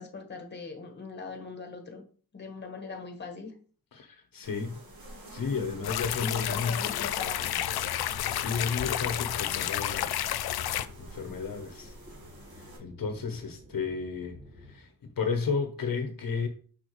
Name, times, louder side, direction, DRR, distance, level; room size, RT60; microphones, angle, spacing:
voice 1, 0.0-2.0 2.3-3.5 6.2-7.6, left 4 dB, 30° left, 1.2 m, -41 dB
voice 2, 3.9-4.8 5.3-6.8 8.0-10.1 10.6-12.0 12.6-16.5, left 5 dB, 60° left, 0.9 m, -33 dB
sound 1, 4.4-12.8, right 1 dB, 70° right, 2.8 m, -48 dB
sound 2, 5.6-14.8, left 1 dB, 25° right, 2.4 m, -52 dB
sound 3, 5.8-10.9, left 12 dB, 80° left, 0.5 m, -31 dB
6.4 x 5.7 x 3.1 m
wide cardioid pair, 170°, 37 cm